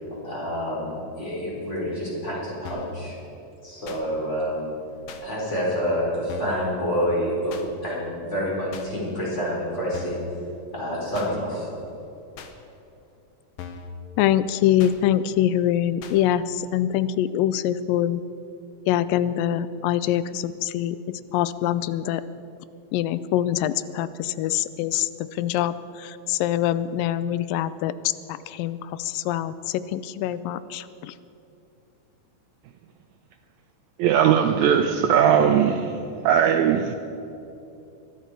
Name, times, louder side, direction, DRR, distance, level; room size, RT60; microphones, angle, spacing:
voice 1, 0.2-3.2 3.6-4.7 5.2-10.2 10.7-11.7, equal, 20° left, -5 dB, 4.2 m, -28 dB
sound 1, 2.7-3.0 3.9-4.0 5.1-5.2 6.3-6.6 7.5-7.7 8.7-8.9 9.9-10.3 11.1-11.3 12.4-12.5 13.6-13.9 14.8-15.0 16.0-16.2, left 6 dB, 70° left, 1.5 m, -39 dB
voice 2, 14.2-18.2 18.9-22.2 22.9-31.1, left 11 dB, 90° left, 15 dB, 2.3 m, -24 dB
voice 3, 34.0-36.0 36.2-37.0, right 8 dB, 85° right, 6 dB, 1.7 m, -19 dB
22.5 x 12.0 x 4.5 m, 2.8 s
omnidirectional pair, 3.9 m